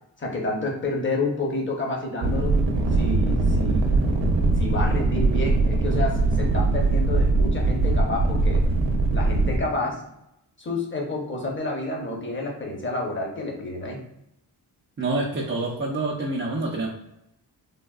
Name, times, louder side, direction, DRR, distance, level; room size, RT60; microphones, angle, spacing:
voice 1, 0.2-2.6 2.9-3.9 4.6-8.6 9.1-10.0 10.6-14.0, left 2 dB, 25° left, 0 dB, 0.8 m, -29 dB
sound 1, 2.2-9.6, right 3 dB, 85° right, 0.6 m, -21 dB
voice 2, 15.0-16.9, right 2 dB, 30° right, -4 dB, 0.5 m, -27 dB
3.4 x 2.2 x 2.3 m, 0.83 s
cardioid pair, 75°, 44 cm